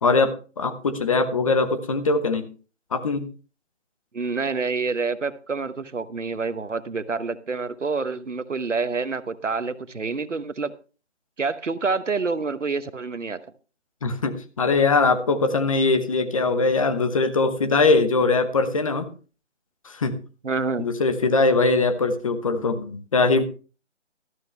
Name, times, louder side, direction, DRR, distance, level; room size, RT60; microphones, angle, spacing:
voice 1, 0.0-2.5 2.9-3.3 14.0-19.1 19.8-20.1 20.8-23.4, left 3 dB, 30° left, 9 dB, 1.0 m, -21 dB
voice 2, 4.1-10.7 11.4-13.4 20.4-20.9, right 4 dB, 85° right, 14 dB, 1.1 m, -27 dB
13.0 x 11.5 x 3.3 m, 0.36 s
figure-of-eight pair, 150°, 36 cm